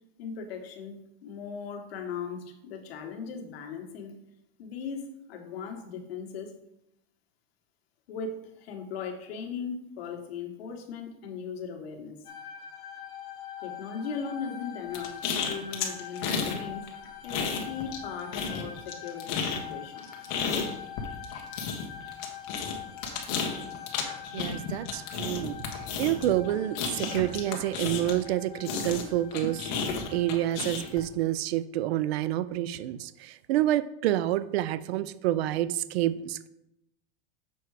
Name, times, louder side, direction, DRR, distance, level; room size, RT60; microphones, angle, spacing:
voice 1, 0.2-4.2 4.6-6.6 8.1-12.3 13.6-15.2 15.5-16.9 17.2-20.1 20.4-20.8, left 6 dB, 75° left, 3 dB, 1.5 m, -38 dB
sound 1, 12.2-31.1, left 9 dB, 15° left, 0.6 m, -44 dB
sound 2, 14.9-16.6 16.9-18.0 18.3-28.3 28.6-31.0, left 5 dB, 45° left, 1.2 m, -32 dB
voice 2, 24.3-29.7 30.1-36.5, right 13 dB, 85° right, 15 dB, 0.5 m, -28 dB
6.9 x 4.7 x 4.8 m, 0.83 s
supercardioid pair, 175°, 31 cm